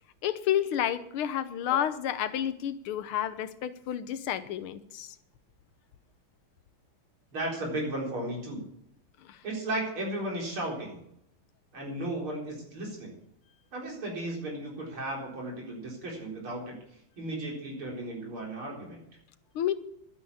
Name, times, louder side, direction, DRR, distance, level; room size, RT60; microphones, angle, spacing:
voice 1, 0.2-5.1 9.3-9.4 19.5-19.7, left 10 dB, 85° left, 12 dB, 1.8 m, -30 dB
voice 2, 7.3-8.6 9.4-11.0 11.7-13.1 13.7-16.8 17.2-19.0, right 1 dB, 80° right, -2 dB, 5.1 m, -35 dB
11.5 x 10.0 x 7.1 m, 0.75 s
omnidirectional pair, 2.3 m